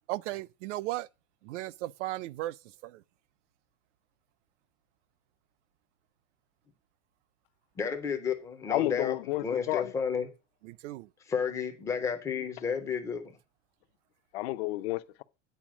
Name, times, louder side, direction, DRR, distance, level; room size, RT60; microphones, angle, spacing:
voice 1, 0.1-1.1 1.4-2.6 2.8-3.0 10.6-11.1, right 17 dB, 65° right, 0.5 m, -36 dB
voice 2, 7.8-9.2 9.4-10.3 11.3-13.3, left 6 dB, 10° left, 0.4 m, -31 dB
voice 3, 8.7-9.9 14.3-15.2, left 16 dB, 55° left, 0.6 m, -31 dB
9.1 x 4.6 x 6.0 m
supercardioid pair, 175°, 39 cm